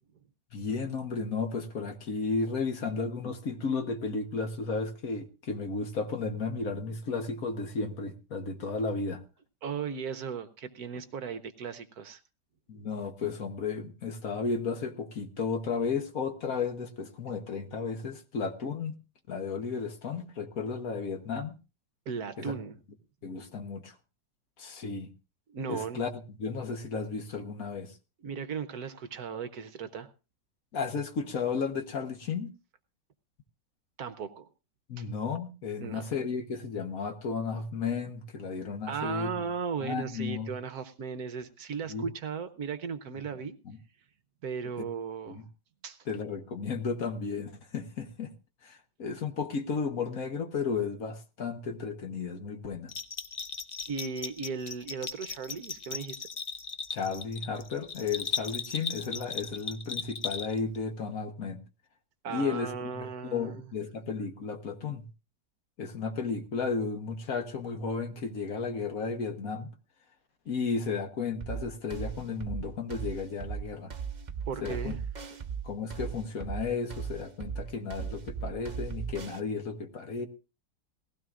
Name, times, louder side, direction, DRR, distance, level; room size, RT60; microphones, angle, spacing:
voice 1, 0.5-9.2 12.7-18.9 19.3-21.5 22.4-22.6 23.2-23.9 24.6-25.1 25.7-26.1 26.4-28.0 30.7-32.5 34.9-39.3 39.8-40.5 41.9-42.1 43.6-43.8 44.8-44.9 45.3-45.4 46.1-48.3 48.6-52.9 56.9-61.6 62.3-65.1 65.8-69.7 70.5-73.9 74.6-75.0 75.6-80.3, left 5 dB, 55° left, 7 dB, 1.5 m, -33 dB
voice 2, 9.6-12.2 22.1-22.8 25.5-26.0 28.2-30.1 34.0-34.5 35.0-35.1 35.8-36.1 38.9-43.5 44.4-45.4 45.8-46.0 53.9-56.3 62.2-63.6 74.5-75.0, right 6 dB, 65° right, 12 dB, 1.3 m, -36 dB
Bell, 52.9-60.8, left 5 dB, 80° left, 0.3 m, -37 dB
sound 1, 71.4-79.4, right 7 dB, 35° right, 0.7 m, -37 dB
18.5 x 15.5 x 2.5 m, 0.31 s
omnidirectional pair, 1.9 m